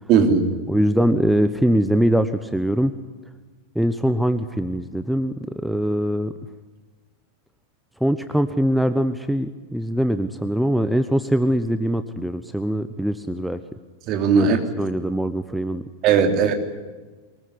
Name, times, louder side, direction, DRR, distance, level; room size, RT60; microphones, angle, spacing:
voice 1, 0.1-0.5 14.1-14.6 16.0-16.5, right 6 dB, 40° right, 5 dB, 3.4 m, -17 dB
voice 2, 0.7-2.9 3.7-5.3 5.6-6.3 8.0-13.6 14.3-14.5 14.8-15.8, equal, ahead, 10 dB, 1.0 m, -22 dB
24.0 x 20.5 x 9.8 m, 1.3 s
figure-of-eight pair, 90°, 0 cm